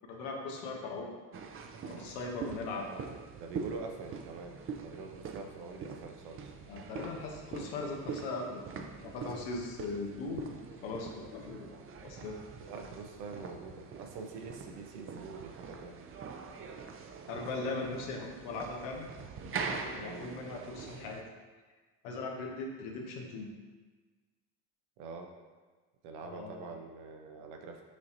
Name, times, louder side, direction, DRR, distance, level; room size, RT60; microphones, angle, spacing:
voice 1, 0.1-1.1 1.8-2.9 6.7-10.6 10.8-11.8 12.0-12.4 17.3-19.1 19.4-21.2 22.0-23.5 26.2-26.7, left 3 dB, 80° left, 1 dB, 0.9 m, -39 dB
sound 1, 1.3-21.2, right 5 dB, 30° right, 0.4 m, -44 dB
voice 2, 2.7-3.1 3.4-6.5 12.6-16.0 20.0-20.2 25.0-25.3 26.0-27.8, right 4 dB, 75° right, 4 dB, 0.7 m, -45 dB
6.1 x 2.8 x 2.6 m, 1.4 s
hypercardioid pair, 60°, 43 cm